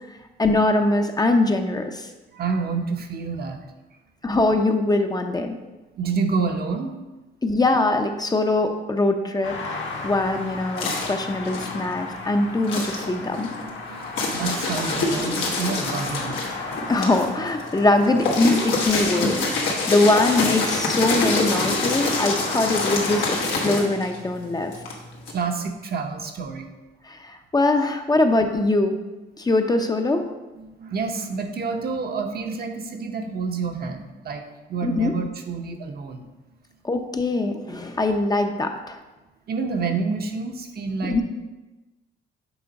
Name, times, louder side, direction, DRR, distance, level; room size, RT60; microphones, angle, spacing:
voice 1, 0.1-2.1 4.2-5.6 7.4-13.5 16.9-24.8 27.0-29.0 29.4-30.2 34.8-35.1 36.8-39.0 41.1-41.2, left 2 dB, 20° left, 5 dB, 0.6 m, -22 dB
voice 2, 2.3-3.6 6.0-6.9 13.2-16.5 18.6-18.7 25.3-26.7 30.5-36.3 39.5-41.2, right 4 dB, 50° right, 4 dB, 0.9 m, -28 dB
sound 1, 9.4-23.3, left 3 dB, 70° left, 1.4 m, -35 dB
sound 2, 9.9-12.2 12.6-25.3, left 3 dB, 90° left, 1.4 m, -26 dB
7.0 x 3.6 x 5.2 m, 1.1 s
cardioid pair, 90°, 20 cm